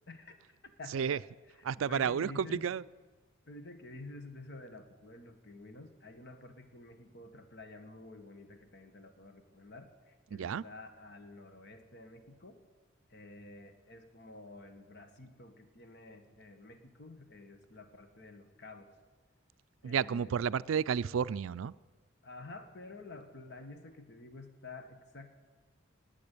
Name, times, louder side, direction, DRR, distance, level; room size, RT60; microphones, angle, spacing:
voice 1, 0.1-0.4 0.8-2.7 3.5-12.6 13.1-18.9 19.8-20.6 22.2-25.3, left 2 dB, 55° left, 1.7 m, -50 dB
voice 2, 1.7-2.8 10.3-10.6 19.8-21.7, right 7 dB, 80° right, 0.4 m, -31 dB
19.5 x 8.6 x 8.4 m
head